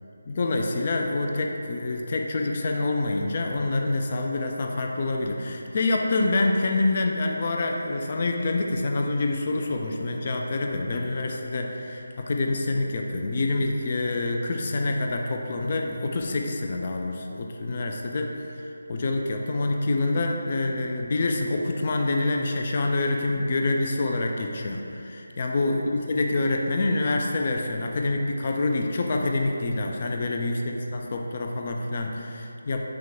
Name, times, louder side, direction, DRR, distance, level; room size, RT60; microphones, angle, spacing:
voice 1, 0.3-18.3 18.9-32.8, left 2 dB, 40° left, 2 dB, 0.3 m, -26 dB
6.0 x 2.2 x 3.4 m, 2.7 s
figure-of-eight pair, 160°, 0 cm